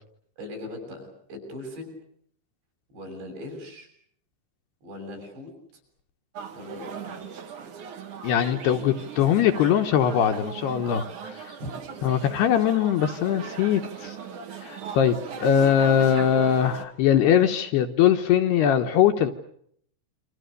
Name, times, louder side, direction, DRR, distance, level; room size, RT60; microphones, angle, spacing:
voice 1, 0.4-2.0 2.9-3.9 4.8-5.5 6.5-7.6 11.6-11.7, left 1 dB, 65° right, 3 dB, 9.4 m, -39 dB
sound 1, 6.3-16.8, right 7 dB, 50° right, 3.1 m, -39 dB
voice 2, 8.2-11.4 12.0-14.2 14.6-19.3, left 9 dB, 70° left, 5 dB, 3.0 m, -21 dB
28.5 x 26.0 x 6.8 m, 0.67 s
omnidirectional pair, 5.4 m